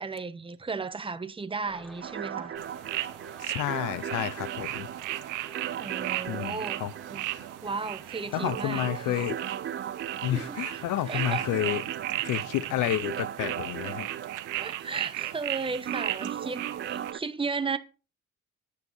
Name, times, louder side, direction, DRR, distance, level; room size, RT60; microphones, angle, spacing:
voice 1, 0.0-2.6 5.5-6.8 7.1-7.2 7.6-8.8 9.1-9.3 10.3-10.6 11.1-11.4 14.6-17.8, right 4 dB, 15° right, 1.1 m, -35 dB
sound 1, 1.6-9.3, right 2 dB, ahead, 5.3 m, -53 dB
sound 2, 2.0-17.2, right 9 dB, 40° right, 0.6 m, -38 dB
sound 3, 2.6-17.1, right 16 dB, 90° right, 0.7 m, -36 dB
voice 2, 3.4-4.9 6.3-6.9 8.3-9.5 10.2-11.8 12.2-14.1, left 14 dB, 90° left, 0.8 m, -30 dB
10.0 x 9.5 x 5.5 m
cardioid pair, 90°, 30 cm